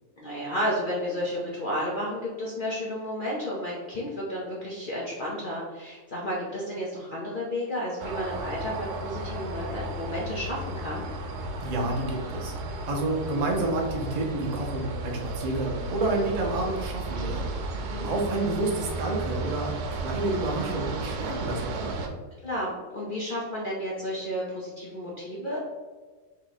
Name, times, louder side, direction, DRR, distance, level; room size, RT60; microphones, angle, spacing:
voice 1, 0.2-11.1 17.7-18.1 22.4-25.6, equal, 50° left, -5 dB, 0.6 m, -32 dB
sound 1, 8.0-22.1, right 2 dB, 80° right, 1.1 m, -34 dB
voice 2, 11.6-12.5 12.9-22.1, right 2 dB, 65° right, 0 dB, 0.4 m, -29 dB
3.1 x 2.9 x 4.0 m, 1.3 s
omnidirectional pair, 1.7 m